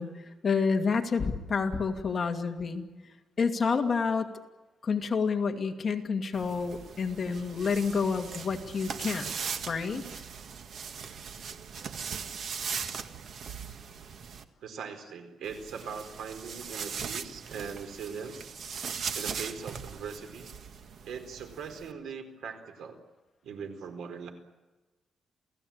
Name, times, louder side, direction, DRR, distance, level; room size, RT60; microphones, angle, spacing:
voice 1, 0.0-2.9 3.4-4.3 4.8-9.3 9.7-10.0, left 5 dB, 35° left, 4 dB, 2.4 m, -29 dB
sound 1, 6.3-14.4 15.4-21.9, right 6 dB, 60° right, 1.7 m, -39 dB
voice 2, 14.6-18.8 19.1-20.5 21.0-23.0 23.4-24.3, right 6 dB, 85° right, 6 dB, 4.5 m, -40 dB
28.5 x 17.5 x 8.9 m, 1.2 s
cardioid pair, 140°, 0 cm